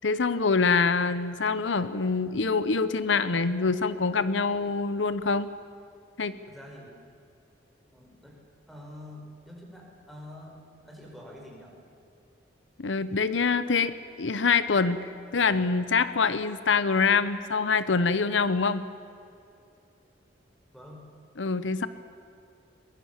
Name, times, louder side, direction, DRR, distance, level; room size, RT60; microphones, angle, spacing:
voice 1, 0.0-5.5 6.2-6.3 12.8-18.8 21.4-21.9, left 4 dB, 90° left, 13 dB, 0.8 m, -25 dB
voice 2, 6.4-6.9 7.9-8.4 8.7-11.7 20.7-21.1, left 1 dB, ahead, -1 dB, 4.8 m, -46 dB
22.5 x 20.5 x 7.4 m, 2.6 s
head